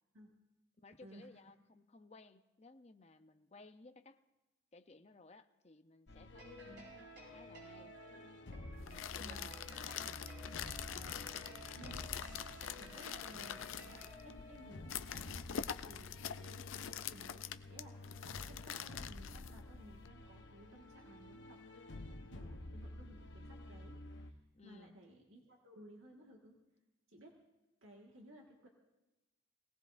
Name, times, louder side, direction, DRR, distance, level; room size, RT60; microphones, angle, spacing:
voice 1, 0.8-4.2 4.7-8.0 8.8-10.3 24.5-25.0, left 3 dB, 35° left, 9 dB, 0.6 m, -59 dB
sound 1, 6.1-24.3, left 2 dB, 65° left, 0.9 m, -51 dB
sound 2, 6.3-14.8, right 1 dB, 60° right, 5.4 m, -56 dB
sound 3, 8.7-20.1, left 9 dB, 80° left, 0.4 m, -45 dB
voice 2, 9.2-9.5 11.7-12.1 12.7-26.6 27.1-27.4 27.8-28.7, right 1 dB, 90° right, 0 dB, 1.7 m, -58 dB
22.0 x 17.0 x 2.6 m, 1.0 s
head